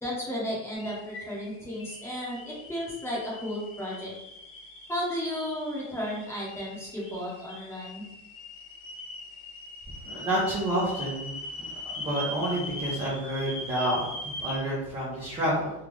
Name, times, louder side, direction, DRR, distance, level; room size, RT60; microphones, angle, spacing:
voice 1, 0.0-4.1 4.9-8.0, equal, 5° left, -6 dB, 0.8 m, -34 dB
sound 1, 0.7-14.6, left 1 dB, 40° left, 1.0 m, -41 dB
voice 2, 10.0-15.7, right 1 dB, 10° right, -7 dB, 0.4 m, -29 dB
3.6 x 2.4 x 3.0 m, 0.89 s
supercardioid pair, 150°, 50 cm